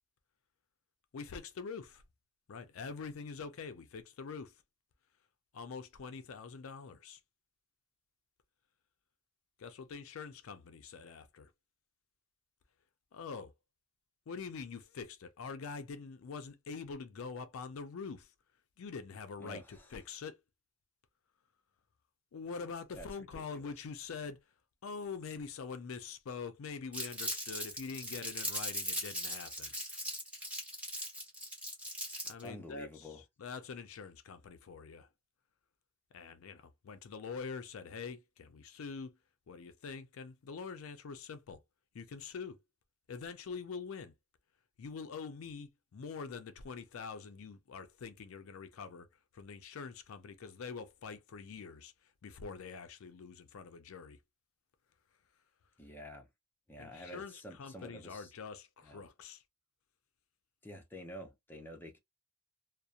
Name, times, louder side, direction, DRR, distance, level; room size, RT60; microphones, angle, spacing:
voice 1, 1.1-2.0 2.5-4.6 5.5-7.2 9.6-11.5 13.1-13.5 14.3-18.3 18.8-20.4 22.3-24.4 24.8-29.7 32.2-35.1 36.1-39.2 39.5-41.6 41.9-42.6 43.1-44.1 44.8-49.1 49.3-54.2 56.8-59.4, left 5 dB, 70° left, 0.4 m, -45 dB
voice 2, 19.4-19.9 23.0-23.1 23.3-23.7 32.4-33.2 55.8-56.3 56.7-58.3 58.8-59.0 60.6-62.0, equal, 10° left, 0.6 m, -49 dB
Crumpling crinkling, 26.9-32.5, equal, 5° right, 1.0 m, -39 dB
2.7 x 2.0 x 2.4 m
head